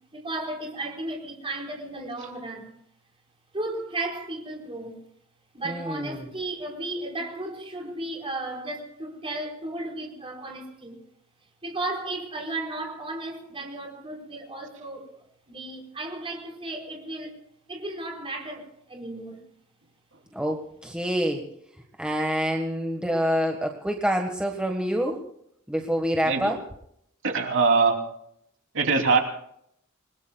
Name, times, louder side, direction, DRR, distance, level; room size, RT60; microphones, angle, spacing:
voice 1, 0.1-2.7 3.5-5.0 5.5-11.0 11.6-17.4 17.7-19.4, right 2 dB, 25° right, 4.5 m, -34 dB
voice 2, 5.6-6.3 20.3-21.5 22.0-25.2 25.7-26.6, equal, 5° right, 1.5 m, -27 dB
voice 3, 27.2-28.0 28.7-29.2, right 4 dB, 60° right, 3.0 m, -21 dB
28.5 x 21.0 x 2.3 m
head